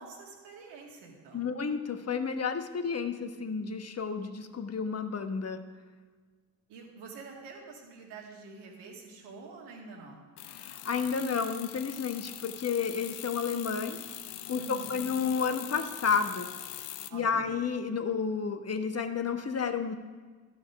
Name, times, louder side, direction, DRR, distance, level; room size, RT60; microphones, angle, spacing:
voice 1, 0.0-1.5 6.7-10.3 14.6-15.0 17.1-17.6, right 4 dB, 80° right, -1 dB, 2.0 m, -47 dB
voice 2, 1.3-5.6 10.5-14.0 14.5-16.5 17.1-19.9, left 6 dB, 40° left, 8 dB, 1.2 m, -31 dB
sound 1, 10.4-17.1, left 13 dB, 85° left, 0.6 m, -42 dB
12.0 x 6.2 x 6.0 m, 1.5 s
hypercardioid pair, 45°, 40 cm